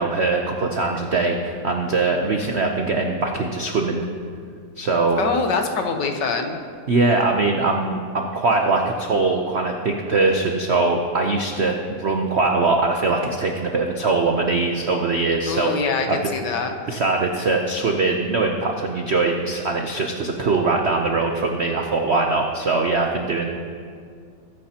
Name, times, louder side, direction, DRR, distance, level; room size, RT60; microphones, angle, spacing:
voice 1, 0.0-4.1 4.8-5.2 6.9-15.7 16.1-16.3 16.9-23.5, right 3 dB, 70° right, 2 dB, 0.6 m, -22 dB
voice 2, 5.2-6.6 15.5-16.7, left 4 dB, 65° left, 5 dB, 1.5 m, -24 dB
21.0 x 9.8 x 2.9 m, 2.3 s
omnidirectional pair, 2.2 m